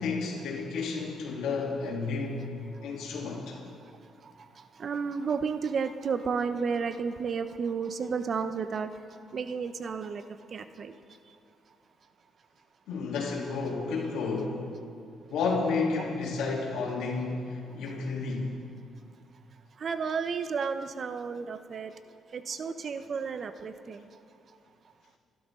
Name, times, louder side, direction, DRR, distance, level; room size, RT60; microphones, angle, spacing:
voice 1, 0.0-2.4 2.8-3.6 12.9-14.6 15.3-18.5, left 4 dB, 85° left, -2 dB, 3.2 m, -31 dB
voice 2, 4.2-8.9 9.3-10.2 10.5-11.0 19.8-21.9 22.3-24.1, right 5 dB, 50° right, 10 dB, 0.8 m, -32 dB
29.0 x 12.0 x 3.8 m, 2.4 s
cardioid pair, 90°, 0 cm